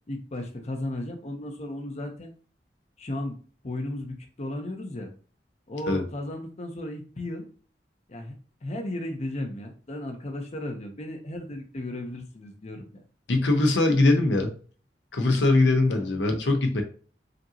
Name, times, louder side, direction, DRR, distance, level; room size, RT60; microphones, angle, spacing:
voice 1, 0.1-2.3 3.0-3.4 3.6-5.1 5.7-7.5 8.1-8.4 8.6-13.0 15.9-16.1, left 1 dB, 40° left, 4 dB, 0.7 m, -35 dB
voice 2, 13.3-14.5 15.1-16.8, left 2 dB, 85° left, 5 dB, 0.8 m, -21 dB
5.2 x 2.8 x 2.8 m, 0.40 s
head